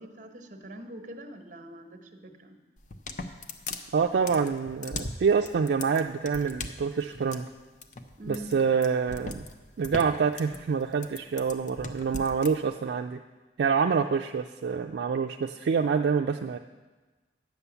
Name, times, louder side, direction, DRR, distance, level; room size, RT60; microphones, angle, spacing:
voice 1, 0.0-2.6 8.2-8.5, right 1 dB, 45° right, 5 dB, 1.0 m, -43 dB
sound 1, 2.8-12.5, left 3 dB, 45° left, 0.6 m, -39 dB
voice 2, 3.9-7.5 8.3-9.4 9.8-13.2 13.6-16.6, right 6 dB, 70° right, 4 dB, 0.4 m, -26 dB
9.3 x 7.0 x 7.0 m, 1.2 s
head